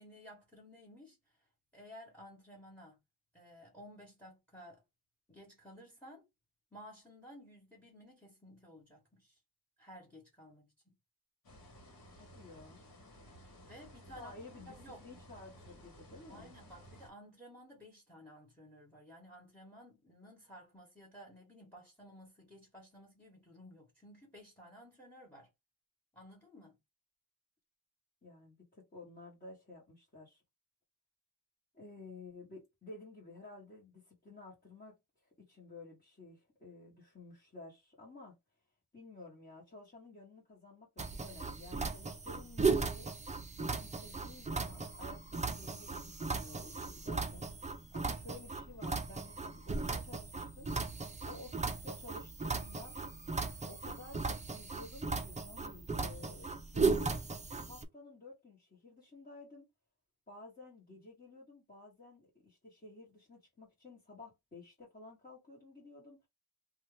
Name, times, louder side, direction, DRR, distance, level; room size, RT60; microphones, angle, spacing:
voice 1, 0.0-1.5 1.7-3.0 3.3-4.8 5.3-6.3 6.7-9.4 9.8-10.9 13.6-14.3 14.7-15.0 16.3-25.5 26.1-26.8, equal, 5° left, 1.2 m, -55 dB
sound 1, 11.4-17.1, equal, 60° left, 1.5 m, -56 dB
voice 2, 12.2-12.8 14.1-14.8 15.0-16.5 28.2-30.4 31.7-35.0 35.2-38.4 38.9-43.1 43.6-47.5 47.9-50.7 51.2-53.0 53.6-57.2 57.6-59.6 60.3-66.2, left 2 dB, 25° left, 1.2 m, -53 dB
sound 2, 41.0-57.8, right 4 dB, 20° right, 0.4 m, -37 dB
2.7 x 2.3 x 3.2 m
wide cardioid pair, 115°, 40 cm